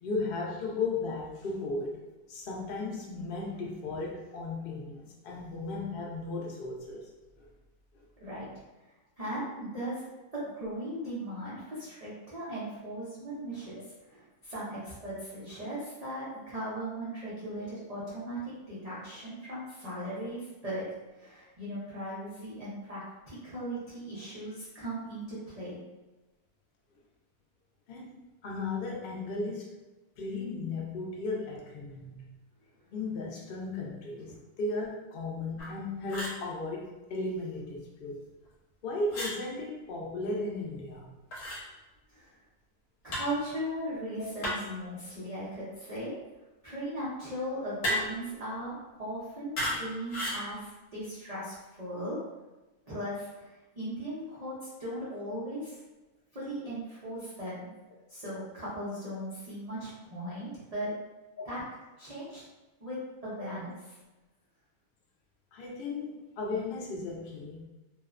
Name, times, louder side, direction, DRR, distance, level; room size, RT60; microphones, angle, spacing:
voice 1, 0.0-2.0 2.3-7.1 7.4-7.5 27.9-29.8 30.2-32.2 32.9-38.2 38.8-41.1 61.4-61.5 65.5-67.6, left 3 dB, 85° left, -2 dB, 0.4 m, -35 dB
voice 2, 9.2-10.0 10.3-13.7 14.0-20.8 21.2-25.8 34.3-34.4 42.1-42.3 43.0-46.1 46.6-52.2 52.9-54.5 54.8-55.8 56.3-57.7 58.1-60.9 61.4-61.6 62.0-62.4 62.8-63.0 63.2-64.0, right 1 dB, 45° right, -10 dB, 0.5 m, -38 dB
sound 1, 35.6-35.7 36.1-36.4 39.1-39.4 41.3-41.6 43.1-43.4 44.4-44.8 47.8-48.3 49.6-49.8 50.1-50.4, equal, 65° left, 1.1 m, -33 dB
2.6 x 2.1 x 2.4 m, 1.1 s
omnidirectional pair, 1.6 m